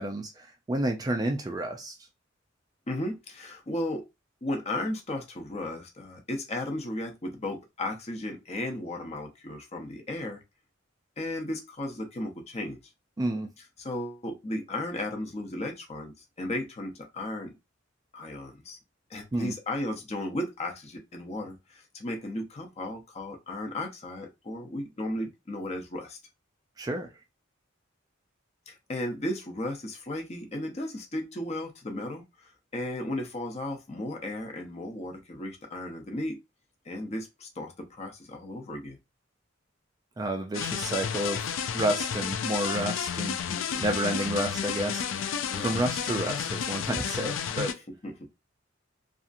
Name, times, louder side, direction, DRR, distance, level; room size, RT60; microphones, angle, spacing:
voice 1, 0.0-2.0 13.2-13.5 19.3-19.5 26.8-27.1 40.2-43.4 43.8-45.1 45.4-47.8, right 1 dB, 20° right, 0.3 m, -30 dB
voice 2, 2.9-4.0 4.4-10.4 11.2-12.8 13.8-17.5 18.1-18.8 19.1-26.2 28.7-36.4 36.9-39.0 43.5-43.9 45.5-45.8 48.0-48.3, left 1 dB, 35° left, 0.7 m, -35 dB
sound 1, 40.5-47.7, left 8 dB, 70° left, 0.4 m, -31 dB
2.8 x 2.4 x 2.5 m
head